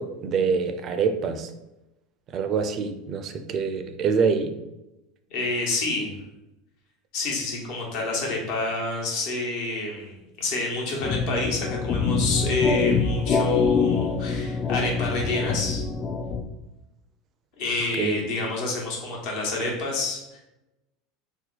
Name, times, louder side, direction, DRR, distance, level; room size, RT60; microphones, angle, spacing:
voice 1, 0.0-1.5 2.3-4.5 18.0-18.2, right 5 dB, 40° right, 8 dB, 0.4 m, -25 dB
voice 2, 5.3-6.2 7.1-15.8 17.6-20.4, left 2 dB, 65° left, -1 dB, 1.1 m, -28 dB
sound 1, 11.0-16.4, left 5 dB, 35° left, 0.4 m, -25 dB
2.8 x 2.2 x 4.0 m, 0.95 s
supercardioid pair, 115°, 0 cm